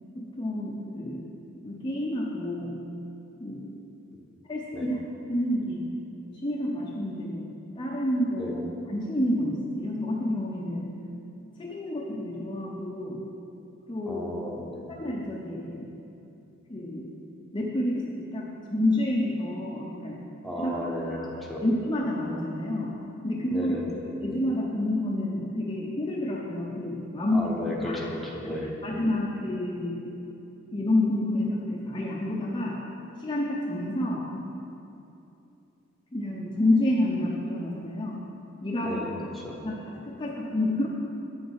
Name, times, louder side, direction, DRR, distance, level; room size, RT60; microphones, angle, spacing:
voice 1, 0.1-1.3 1.6-2.8 3.4-3.8 4.5-5.0 5.3-5.9 6.4-7.5 7.8-8.6 8.9-10.9 11.6-13.2 13.9-14.3 14.9-15.9 16.7-17.1 17.5-20.2 20.6-20.7 21.1-23.8 24.0-27.6 27.8-28.0 28.4-30.2 30.7-32.8 33.2-34.5 36.1-38.3 38.6-39.1 39.6-40.9, left 1 dB, 25° left, -3 dB, 0.7 m, -29 dB
voice 2, 14.1-14.9 20.4-21.2 21.5-21.6 23.5-24.0 27.3-28.7 38.8-39.6, left 1 dB, ahead, -3 dB, 1.0 m, -34 dB
9.0 x 6.9 x 4.7 m, 2.8 s
head